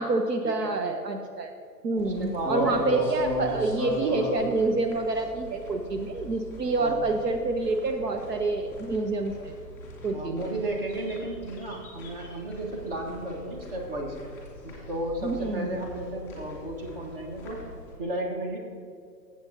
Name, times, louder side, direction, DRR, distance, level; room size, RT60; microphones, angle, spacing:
voice 1, 0.0-1.5 1.8-9.5 10.0-10.5 15.2-15.8, right 3 dB, 70° right, 5 dB, 0.9 m, -27 dB
sound 1, 2.0-17.9, left 1 dB, 5° left, 2.0 m, -38 dB
voice 2, 2.0-3.1 6.8-7.0 10.1-14.2 14.6-17.6 18.0-18.6, right 1 dB, 35° right, 1 dB, 1.6 m, -34 dB
14.5 x 7.8 x 2.8 m, 2.3 s
hypercardioid pair, 150°, 50 cm